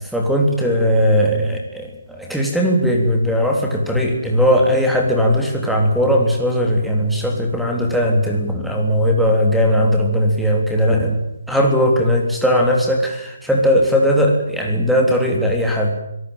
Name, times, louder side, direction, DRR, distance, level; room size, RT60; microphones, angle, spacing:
voice 1, 0.1-11.2 11.5-15.9, equal, ahead, 1 dB, 3.5 m, -18 dB
26.0 x 18.0 x 9.1 m, 0.83 s
figure-of-eight pair, 140°, 0 cm